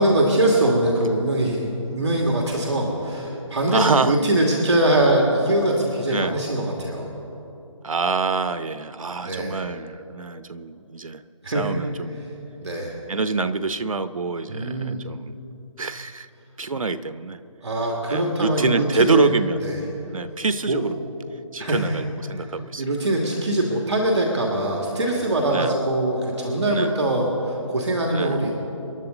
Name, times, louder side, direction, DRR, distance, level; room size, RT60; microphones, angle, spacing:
voice 1, 0.0-7.1 9.2-9.6 11.4-11.8 12.6-12.9 14.5-15.0 17.6-19.3 19.6-19.8 20.7-20.8 21.6-22.0 22.4-22.5 22.8-28.5, right 1 dB, 60° right, -1 dB, 2.6 m, -22 dB
voice 2, 3.7-4.2 6.1-6.4 7.8-11.2 11.5-12.2 13.1-15.3 15.8-16.3 16.6-17.4 18.1-19.6 20.1-20.9 21.5-22.8 25.5-25.7 26.7-26.9 28.1-28.4, right 4 dB, 85° right, 12 dB, 0.9 m, -26 dB
28.0 x 11.5 x 4.0 m, 2.9 s
figure-of-eight pair, 165°, 17 cm